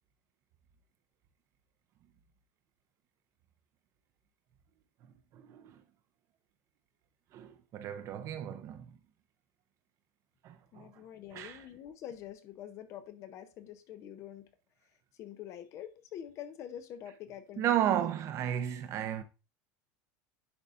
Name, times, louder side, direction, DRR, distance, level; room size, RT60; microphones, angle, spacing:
voice 1, 5.0-5.8 7.3-9.0 10.4-11.0 11.3-11.7 17.6-19.2, right 11 dB, 40° right, 0.7 m, -34 dB
voice 2, 10.7-14.5 15.2-18.1, left 10 dB, 40° left, 0.7 m, -46 dB
10.5 x 4.1 x 2.5 m
supercardioid pair, 145°, 8 cm